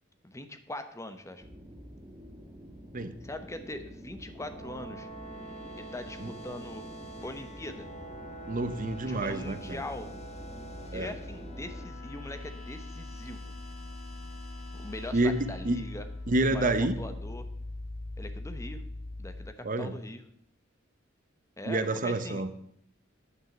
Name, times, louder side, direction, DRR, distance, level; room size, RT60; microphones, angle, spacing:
voice 1, 0.2-1.4 3.2-5.1 5.8-6.9 7.2-7.9 9.1-10.1 10.9-13.5 14.8-16.0 16.5-17.4 18.2-18.8 19.2-20.2 21.6-22.4, left 1 dB, 15° left, 9 dB, 0.9 m, -41 dB
sound 1, 1.4-11.9, equal, 20° right, 1.2 m, -47 dB
sound 2, 4.2-16.5, right 1 dB, 30° left, 1.4 m, -47 dB
sound 3, 8.5-19.5, left 2 dB, 60° left, 0.7 m, -42 dB
voice 2, 8.5-9.8 10.9-11.1 15.1-15.8 16.3-17.0 19.6-19.9 21.7-22.5, right 2 dB, 40° right, 11 dB, 0.8 m, -28 dB
9.7 x 6.3 x 7.2 m, 0.70 s
head